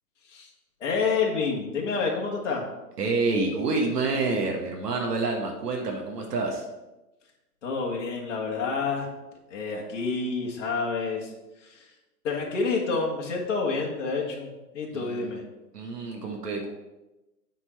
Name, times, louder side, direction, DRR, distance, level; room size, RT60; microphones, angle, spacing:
voice 1, 0.8-2.6 7.6-9.1 9.5-11.3 11.6-11.9 12.2-15.4, left 4 dB, 50° left, -1 dB, 1.6 m, -28 dB
voice 2, 3.0-6.7 14.9-15.3 15.7-16.7, right 3 dB, 75° right, 1 dB, 1.5 m, -28 dB
8.0 x 4.4 x 4.3 m, 1.0 s
hypercardioid pair, 160°, 48 cm